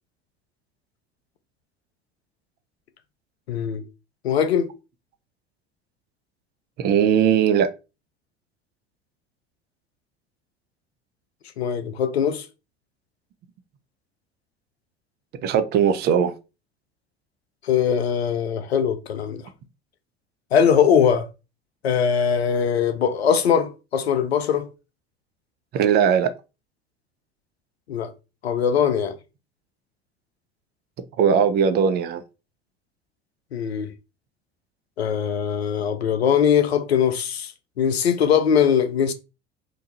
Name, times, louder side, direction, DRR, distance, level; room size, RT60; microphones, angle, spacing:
voice 1, 3.5-3.8 4.2-4.7 11.6-12.5 17.6-19.4 20.5-21.3 21.8-24.7 27.9-28.1 28.4-29.1 33.5-33.9 35.0-37.5 37.8-39.1, left 7 dB, 85° left, 0.5 m, -21 dB
voice 2, 6.8-7.7 15.4-16.3 25.7-26.3 31.2-32.2, right 7 dB, 35° right, 0.4 m, -19 dB
2.8 x 2.2 x 2.7 m
figure-of-eight pair, 65°, 31 cm